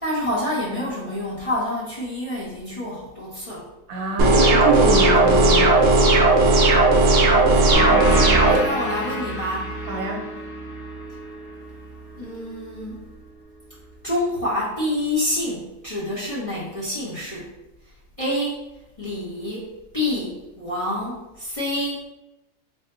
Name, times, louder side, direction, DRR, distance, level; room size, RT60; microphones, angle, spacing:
voice 1, 0.0-3.6 8.4-9.7 12.1-13.0 14.0-17.5 18.2-18.7 19.0-22.1, left 1 dB, 30° left, -8 dB, 0.6 m, -27 dB
voice 2, 3.9-5.8 9.9-10.3, right 3 dB, 75° right, 1 dB, 1.1 m, -25 dB
sound 1, 4.2-8.6, right 2 dB, 60° right, 0.8 m, -16 dB
sound 2, 7.7-12.9, equal, 65° left, 1.2 m, -28 dB
3.5 x 2.2 x 3.8 m, 0.96 s
omnidirectional pair, 1.5 m